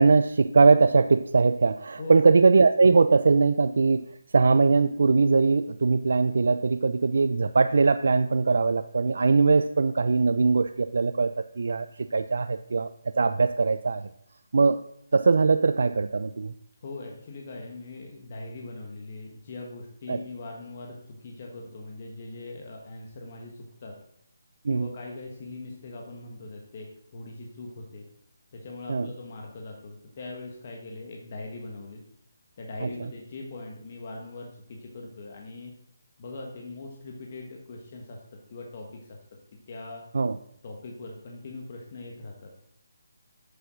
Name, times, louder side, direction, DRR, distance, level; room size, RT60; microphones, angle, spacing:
voice 1, 0.0-14.1 14.5-14.8 15.1-16.5 20.1-20.2 24.6-24.9 28.9-29.1 32.8-33.1 40.1-40.4, right 4 dB, 60° right, 10 dB, 0.4 m, -21 dB
voice 2, 16.8-23.9 24.7-28.0 28.5-32.0 32.6-35.7 36.2-38.2 38.5-39.2 39.7-40.0 40.6-42.5, left 2 dB, 30° left, 0 dB, 1.3 m, -41 dB
8.5 x 7.0 x 6.3 m, 0.73 s
hypercardioid pair, 175°, 0 cm